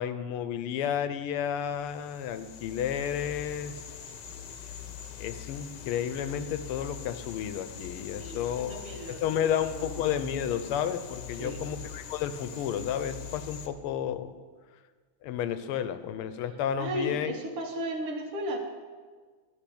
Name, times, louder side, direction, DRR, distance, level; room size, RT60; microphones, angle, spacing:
voice 1, 0.0-3.7 5.2-8.8 9.1-14.3 15.2-17.3, left 9 dB, 80° left, 12 dB, 1.5 m, -32 dB
sound 1, 1.5-13.7, left 8 dB, 65° left, 1.2 m, -43 dB
voice 2, 8.2-10.3 11.4-11.7 16.8-18.6, equal, 80° right, 3 dB, 2.2 m, -35 dB
12.0 x 4.8 x 8.5 m, 1.5 s
omnidirectional pair, 2.4 m